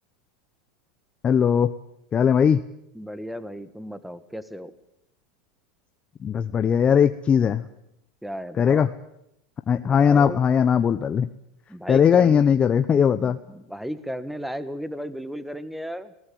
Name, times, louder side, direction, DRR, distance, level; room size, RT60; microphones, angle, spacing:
voice 1, 1.2-1.7 2.1-2.6 6.2-7.7 8.6-8.9 9.7-11.3 11.9-13.4, left 7 dB, 25° left, 9 dB, 0.8 m, -19 dB
voice 2, 2.9-4.7 8.2-8.9 9.8-10.4 11.7-12.5 13.2-16.1, equal, ahead, 13 dB, 1.5 m, -34 dB
20.0 x 18.5 x 9.3 m, 0.81 s
supercardioid pair, 120°, 4 cm